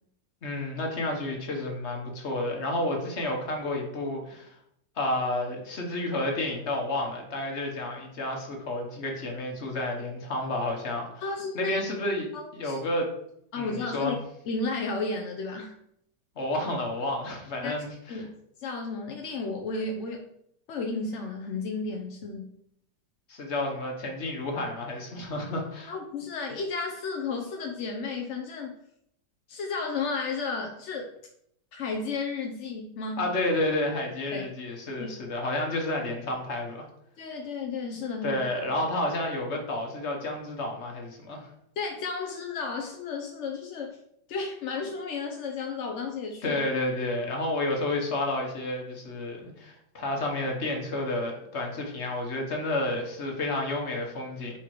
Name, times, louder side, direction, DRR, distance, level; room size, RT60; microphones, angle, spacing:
voice 1, 0.4-4.6 4.9-11.3 11.5-12.3 12.5-13.1 13.5-14.2 16.4-18.2 23.3-25.9 33.2-36.8 38.2-41.5 46.4-54.6, left 1 dB, 45° left, 1 dB, 1.4 m, -30 dB
voice 2, 11.2-11.8 12.3-12.8 13.5-14.2 14.5-15.7 17.6-17.7 18.1-18.3 18.6-20.2 20.7-22.5 25.9-28.8 29.5-31.1 31.7-33.3 34.3-34.5 35.0-35.1 37.2-38.4 41.8-44.0 44.3-46.6, left 4 dB, 60° left, 2 dB, 0.8 m, -33 dB
5.0 x 4.7 x 4.6 m, 0.72 s
omnidirectional pair, 1.9 m